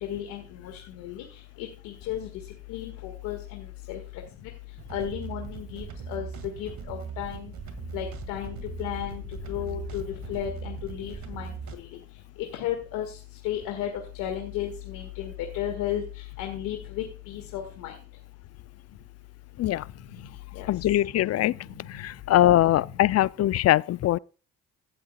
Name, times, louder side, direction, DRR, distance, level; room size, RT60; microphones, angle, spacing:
voice 1, 0.0-7.5 7.9-18.0 19.9-20.7 21.0-22.2 22.8-23.1, left 11 dB, 85° left, 1.8 m, -35 dB
sound 1, 4.7-11.7, right 6 dB, 60° right, 2.0 m, -39 dB
voice 2, 20.7-21.5 21.9-24.2, left 13 dB, 50° left, 0.5 m, -22 dB
16.5 x 7.8 x 2.3 m
supercardioid pair, 70°, 31 cm